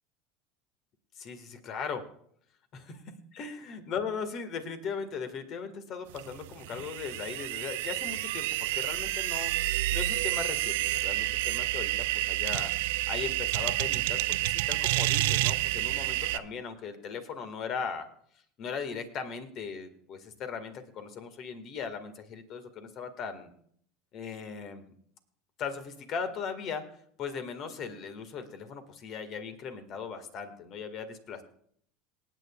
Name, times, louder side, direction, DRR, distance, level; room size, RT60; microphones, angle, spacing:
voice 1, 1.2-2.0 2.7-3.0 3.3-12.7 13.1-18.1 18.6-23.5 24.1-24.9 25.6-31.4, left 6 dB, 40° left, 9 dB, 1.8 m, -38 dB
sound 1, 6.2-16.4, right 16 dB, 60° right, 0.4 m, -29 dB
26.5 x 9.0 x 2.4 m, 0.64 s
figure-of-eight pair, 75°, 0 cm